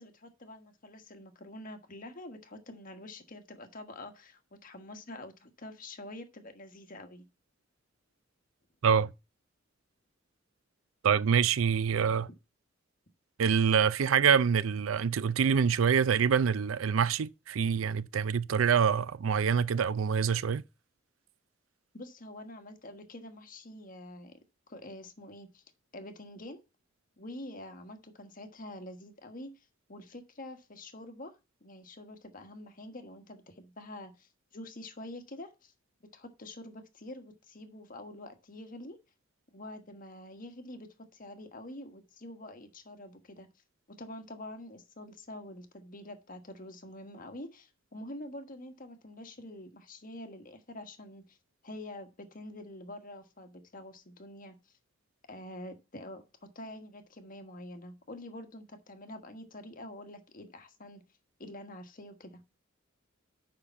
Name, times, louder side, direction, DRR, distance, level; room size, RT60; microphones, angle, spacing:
voice 1, 0.0-7.3 21.9-24.4 24.7-25.6 25.9-26.6 27.2-29.5 29.9-31.3 31.6-35.7 36.1-39.0 39.5-43.5 43.9-51.4 51.6-54.7 55.3-61.0 61.4-62.4, left 1 dB, 45° left, 1.4 m, -46 dB
voice 2, 11.0-12.3 13.4-20.6, right 7 dB, 80° right, 0.4 m, -26 dB
6.8 x 5.7 x 6.9 m
head